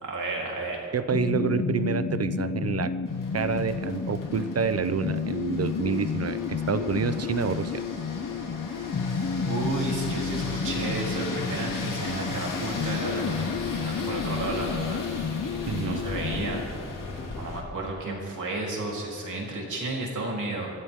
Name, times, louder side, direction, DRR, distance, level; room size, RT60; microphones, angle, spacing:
voice 1, 0.0-0.8 6.8-6.9 9.4-13.6 13.8-15.1 15.8-16.6 17.4-20.7, right 2 dB, 70° right, -2 dB, 3.6 m, -32 dB
voice 2, 0.9-2.9 3.3-7.7 15.7-16.1, right 6 dB, 50° right, 13 dB, 0.7 m, -28 dB
sound 1, 1.1-16.6, left 5 dB, 50° left, 0.6 m, -31 dB
sound 2, 3.1-17.6, left 3 dB, 80° left, 2.7 m, -37 dB
24.5 x 14.5 x 3.7 m, 2.3 s
wide cardioid pair, 120°, 31 cm